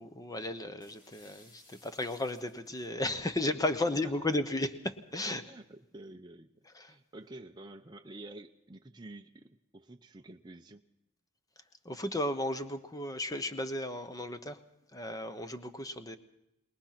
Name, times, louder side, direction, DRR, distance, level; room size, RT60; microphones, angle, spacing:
voice 1, 0.0-5.5 6.7-6.9 11.8-14.6 14.9-16.2, left 1 dB, 15° left, 10 dB, 1.0 m, -34 dB
sound 1, 0.8-2.9, left 1 dB, 40° left, 6.2 m, -60 dB
voice 2, 5.4-6.5 6.8-10.8, right 2 dB, 20° right, 3 dB, 0.6 m, -49 dB
21.5 x 20.5 x 5.9 m, 0.88 s
head